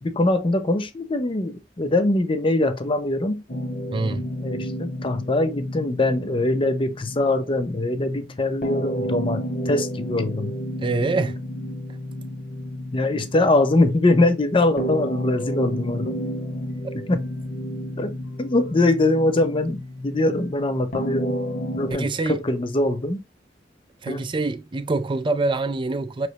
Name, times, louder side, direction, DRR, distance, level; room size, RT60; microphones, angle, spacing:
voice 1, 0.0-3.4 4.4-10.5 12.9-16.2 16.9-17.2 18.0-18.1 18.4-21.4 21.8-23.2 24.1-24.2, left 2 dB, 30° left, 0.6 m, -22 dB
sound 1, 3.5-21.9, equal, 45° left, 1.0 m, -31 dB
voice 2, 3.9-4.2 10.8-11.4 21.9-22.4 24.0-26.3, right 3 dB, 30° right, 0.4 m, -25 dB
5.7 x 3.2 x 2.8 m
head